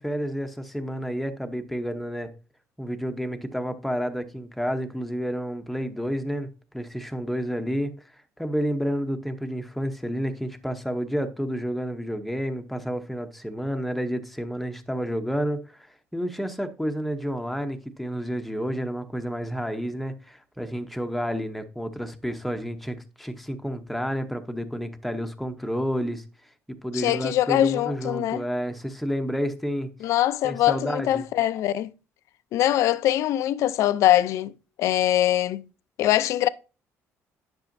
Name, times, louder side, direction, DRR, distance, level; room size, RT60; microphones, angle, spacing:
voice 1, 0.0-2.3 2.8-7.9 8.4-26.2 26.7-29.9 30.4-31.3, equal, ahead, 0.7 m, -30 dB
voice 2, 26.9-28.4 30.0-31.9 32.5-34.5 34.8-35.7 36.0-36.5, left 13 dB, 70° left, 0.5 m, -22 dB
10.5 x 6.1 x 2.6 m
cardioid pair, 140°, 5 cm